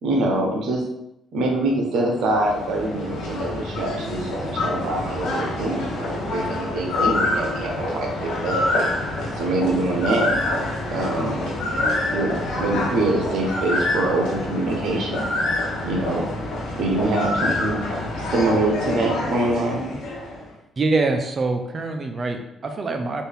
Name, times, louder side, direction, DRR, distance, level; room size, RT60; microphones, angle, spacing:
voice 1, 0.0-0.8 1.3-8.7 9.3-10.3 10.9-11.5 12.1-15.3 15.8-16.3 16.8-17.8 18.2-19.9, right 2 dB, 75° right, 1 dB, 1.0 m, -24 dB
sound 1, 2.1-20.5, left 2 dB, 90° left, 1.1 m, -27 dB
voice 2, 20.8-23.2, right 3 dB, 40° right, 5 dB, 0.6 m, -24 dB
4.2 x 2.7 x 3.5 m, 0.84 s
cardioid pair, 90°, 0 cm